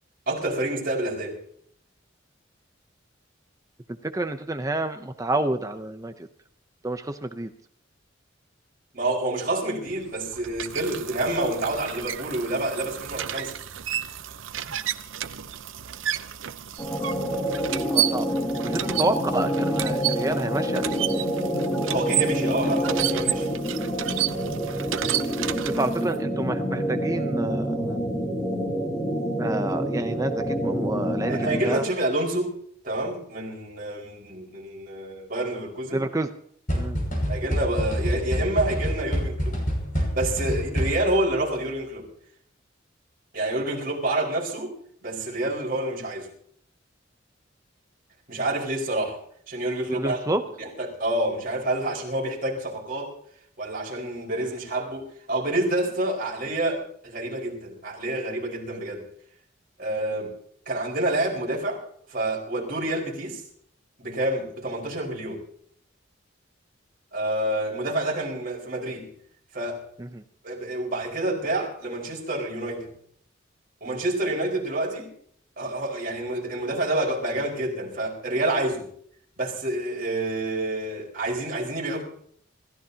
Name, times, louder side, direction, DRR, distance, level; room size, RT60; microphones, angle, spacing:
voice 1, 0.3-1.4 8.9-13.5 21.9-23.5 31.3-32.6 32.8-36.0 37.3-39.6 40.0-42.1 43.3-44.7 45.0-46.3 48.3-49.2 49.5-50.2 50.6-53.1 53.6-59.0 59.8-60.3 60.6-61.8 62.1-63.4 64.0-65.4 67.1-69.1 69.5-69.8 70.4-72.9 73.8-75.1 75.6-78.9 79.4-82.0, right 1 dB, 45° right, -2 dB, 4.9 m, -28 dB
voice 2, 4.0-6.3 6.8-7.5 17.9-18.2 18.6-21.0 25.8-28.0 29.4-31.8 35.9-36.3 36.7-37.0 49.9-50.4 70.1-70.2, right 2 dB, 15° right, 8 dB, 0.6 m, -28 dB
sound 1, 9.9-26.1, right 11 dB, 85° right, 0.7 m, -31 dB
sound 2, 16.8-31.9, equal, 20° left, 2.3 m, -27 dB
sound 3, 36.7-41.3, equal, 45° left, 5.9 m, -27 dB
27.5 x 14.5 x 2.8 m, 0.63 s
head